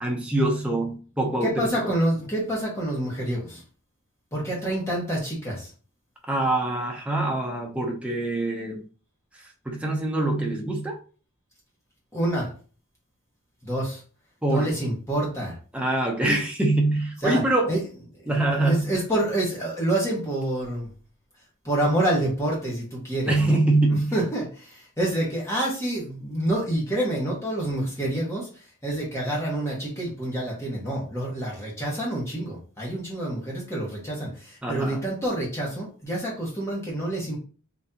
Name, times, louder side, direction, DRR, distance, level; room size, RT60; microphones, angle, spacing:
voice 1, 0.0-1.8 6.3-8.8 9.7-11.0 14.4-14.7 15.7-17.7 18.3-18.9 23.3-24.1 34.6-35.0, right 2 dB, 5° right, -1 dB, 0.6 m, -24 dB
voice 2, 1.4-3.6 4.3-5.7 12.1-12.5 13.6-14.0 14.5-15.5 17.2-17.4 17.7-17.8 18.2-20.9 21.6-23.6 23.9-37.4, right 1 dB, 15° left, -4 dB, 1.3 m, -27 dB
3.8 x 3.2 x 2.8 m, 0.39 s
head